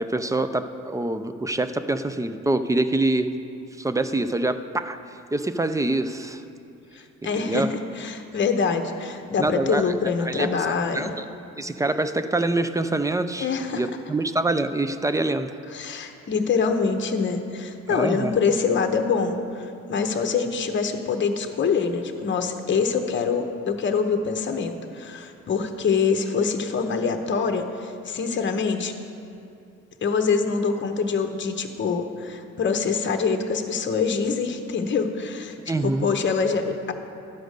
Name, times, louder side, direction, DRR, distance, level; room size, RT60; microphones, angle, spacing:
voice 1, 0.0-3.3 3.8-6.4 7.4-7.7 9.4-9.9 10.2-10.7 10.9-11.2 11.6-13.5 13.7-15.5 17.9-18.3 35.7-36.1, right 2 dB, 10° right, 10 dB, 0.4 m, -25 dB
voice 2, 7.2-11.1 13.4-13.8 15.7-28.9 30.0-35.6 35.8-36.9, left 5 dB, 40° left, 6 dB, 0.8 m, -25 dB
12.0 x 5.1 x 6.5 m, 2.6 s
cardioid pair, 90°, 30 cm